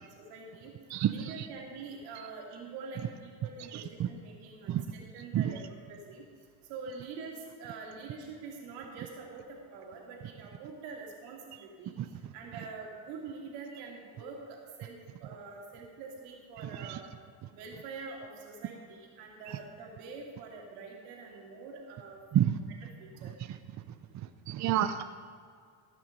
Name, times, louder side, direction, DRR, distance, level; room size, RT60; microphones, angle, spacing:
voice 1, 0.2-0.7 1.1-6.3 6.7-17.1 17.5-22.2 23.0-23.3, right 4 dB, 85° right, -1 dB, 2.8 m, -45 dB
voice 2, 0.9-1.5 3.7-4.1 4.7-4.8 5.3-5.5 12.0-12.1 16.7-17.0 22.3-22.6 24.5-25.0, right 11 dB, 40° right, 10 dB, 0.6 m, -29 dB
16.0 x 6.1 x 5.3 m, 2.1 s
supercardioid pair, 85°, 47 cm